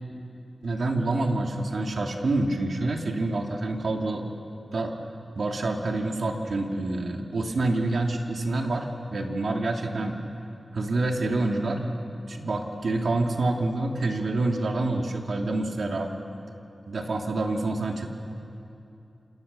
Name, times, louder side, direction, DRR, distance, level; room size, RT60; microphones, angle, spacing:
voice 1, 0.6-4.2 4.7-4.9 5.4-10.2 10.7-11.9 12.3-16.1 16.9-18.1, right 2 dB, 70° right, 2 dB, 2.7 m, -27 dB
29.0 x 27.5 x 6.9 m, 2.8 s
wide cardioid pair, 115°, 0 cm